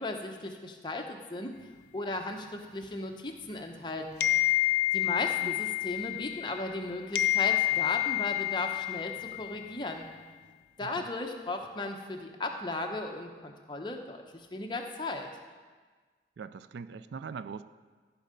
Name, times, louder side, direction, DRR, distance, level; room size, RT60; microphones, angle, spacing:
voice 1, 0.0-1.5 1.9-4.3 4.9-10.1 10.8-15.3, left 2 dB, 25° left, 3 dB, 0.8 m, -36 dB
sound 1, 4.2-6.8 7.2-9.7, left 15 dB, 65° left, 0.4 m, -29 dB
voice 2, 5.1-5.6 10.8-11.1 16.4-17.6, right 5 dB, 80° right, 14 dB, 0.4 m, -42 dB
14.0 x 5.5 x 5.1 m, 1.4 s
head